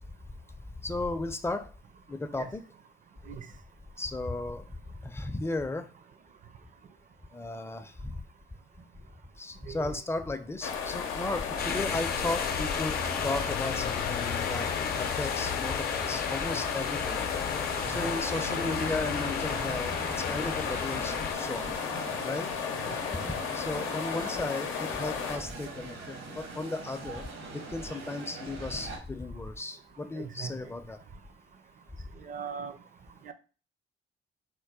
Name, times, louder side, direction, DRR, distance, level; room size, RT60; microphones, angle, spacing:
voice 1, 0.8-1.7 2.1-2.6 4.0-4.6 5.0-5.9 7.3-8.2 9.4-13.0 13.2-14.7 15.0-17.2 17.9-20.0 20.3-21.7 22.2-22.5 23.5-27.2 27.5-31.0, left 2 dB, 10° left, 0.5 m, -35 dB
sound 1, 10.6-25.4, left 6 dB, 85° left, 0.7 m, -34 dB
sound 2, 11.6-21.3, left 6 dB, 50° left, 0.6 m, -34 dB
sound 3, 17.9-29.0, right 3 dB, 85° right, 1.5 m, -42 dB
voice 2, 30.2-30.5 32.2-32.8 33.2-33.3, right 7 dB, 40° right, 0.5 m, -40 dB
4.4 x 2.1 x 4.7 m
cardioid pair, 90°, 20 cm